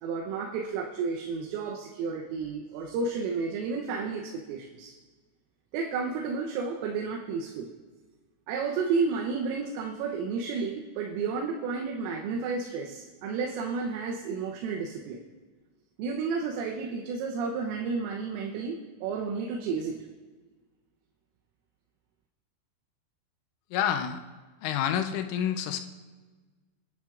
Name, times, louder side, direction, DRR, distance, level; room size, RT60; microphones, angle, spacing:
voice 1, 0.0-4.9 5.7-7.7 8.5-15.2 16.0-20.0, right 5 dB, 90° right, 0 dB, 3.6 m, -32 dB
voice 2, 23.7-24.2 24.6-25.8, left 9 dB, 80° left, 7 dB, 3.1 m, -28 dB
27.0 x 10.5 x 2.5 m, 1.4 s
omnidirectional pair, 5.8 m